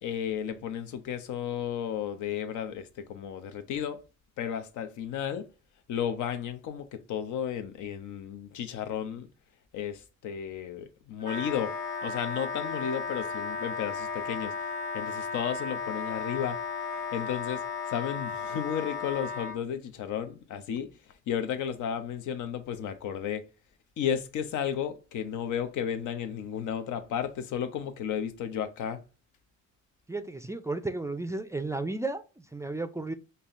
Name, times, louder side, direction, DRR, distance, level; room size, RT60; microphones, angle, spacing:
voice 1, 0.0-4.0 4.4-5.5 5.9-9.3 9.7-11.7 12.0-14.5 14.9-16.6 17.1-20.9 21.3-23.4 24.0-29.0, left 9 dB, 80° left, 0.6 m, -33 dB
Wind instrument woodwind instrument, 11.2-19.6, left 5 dB, 25° left, 1.4 m, -35 dB
voice 2, 30.1-33.1, right 2 dB, 10° right, 0.3 m, -33 dB
5.4 x 2.2 x 2.5 m
cardioid pair, 90°, 30 cm